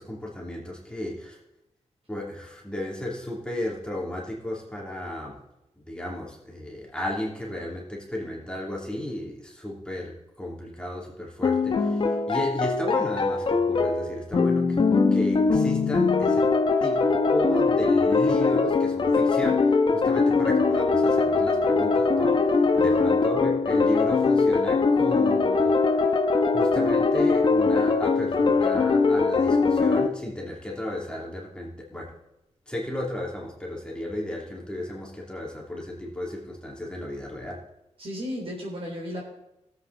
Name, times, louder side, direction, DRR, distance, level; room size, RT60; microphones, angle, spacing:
voice 1, 0.0-1.4 2.1-5.4 5.9-16.5 16.8-26.3 26.5-32.2 32.7-37.6, left 1 dB, 10° left, -3 dB, 2.9 m, -33 dB
sound 1, 11.4-30.1, left 4 dB, 45° left, 1.2 m, -22 dB
voice 2, 38.0-39.2, equal, 55° right, -2 dB, 3.5 m, -34 dB
17.5 x 8.2 x 4.1 m, 0.89 s
wide cardioid pair, 115°, 12 cm